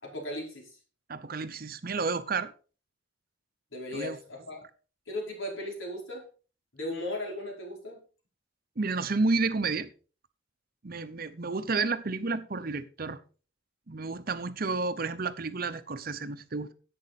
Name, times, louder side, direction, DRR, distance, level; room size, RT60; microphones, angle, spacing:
voice 1, 0.0-0.8 3.7-4.6 5.1-6.3 6.7-8.0, left 1 dB, 80° left, 4.7 m, -37 dB
voice 2, 1.1-2.5 3.9-4.2 8.8-9.9 10.8-13.2 13.9-16.7, right 3 dB, 50° right, 0.8 m, -31 dB
10.5 x 8.6 x 4.1 m
head